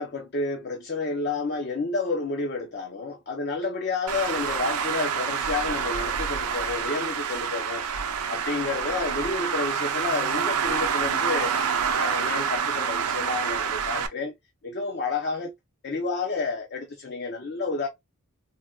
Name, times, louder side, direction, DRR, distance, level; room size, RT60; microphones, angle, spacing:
voice 1, 0.0-14.3 14.6-15.5 15.8-17.9, left 3 dB, 45° left, 0.6 m, -30 dB
Traffic noise roadway noise, 4.1-14.1, right 7 dB, 85° right, 0.5 m, -27 dB
4.0 x 2.2 x 2.3 m
head